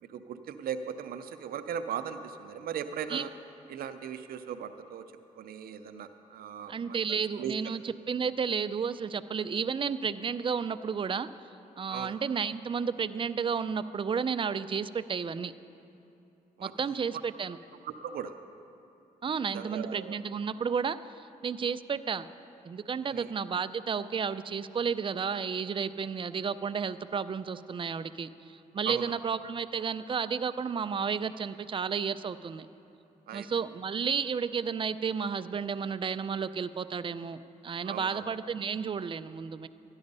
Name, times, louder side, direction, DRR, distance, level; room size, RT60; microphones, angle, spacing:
voice 1, 0.0-3.3 3.7-5.1 5.4-7.7 11.9-12.2 16.6-17.0 17.8-18.3 19.5-20.2 23.0-23.3 28.8-29.2 33.3-33.5 37.8-38.3, right 8 dB, 90° right, 10 dB, 0.6 m, -38 dB
voice 2, 6.7-11.3 11.8-15.5 16.6-17.6 19.2-22.3 22.7-32.7 33.3-39.7, right 6 dB, 35° right, 13 dB, 0.4 m, -32 dB
13.0 x 10.5 x 5.4 m, 2.7 s
cardioid pair, 75°, 15 cm